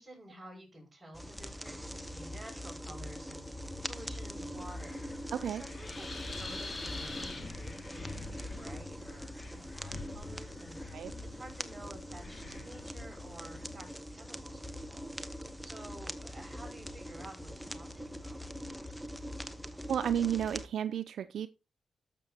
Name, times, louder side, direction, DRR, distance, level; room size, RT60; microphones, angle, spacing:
voice 1, 0.0-5.0 5.4-15.1 15.6-18.9, right 1 dB, 20° right, 6.0 m, -51 dB
sound 1, 1.1-20.7, equal, ahead, 1.0 m, -43 dB
Wind, 3.6-13.8, left 3 dB, 35° left, 2.1 m, -46 dB
voice 2, 5.3-5.6 10.9-11.1 19.9-21.5, right 9 dB, 80° right, 0.4 m, -32 dB
12.0 x 7.0 x 2.8 m
cardioid pair, 75°, 0 cm